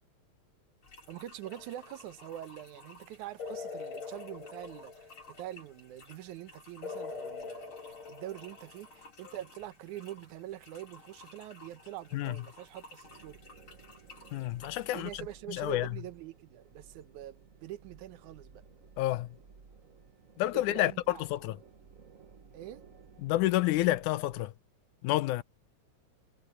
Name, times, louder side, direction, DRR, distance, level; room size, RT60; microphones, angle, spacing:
sound 1, 0.8-15.2, left 3 dB, 45° left, 4.5 m, -55 dB
voice 1, 1.1-7.7 8.1-13.4 14.9-18.6 20.5-21.2 22.5-22.8, right 13 dB, 85° right, 2.3 m, -44 dB
sound 2, 1.4-2.0 3.4-5.5 6.8-8.9, left 5 dB, 60° left, 3.4 m, -43 dB
sound 3, 13.0-24.5, right 5 dB, 40° right, 1.1 m, -56 dB
voice 2, 14.3-15.1 15.5-15.9 19.0-19.3 20.4-21.6 23.2-24.5 25.0-25.4, left 16 dB, 85° left, 2.2 m, -29 dB
omnidirectional pair, 3.4 m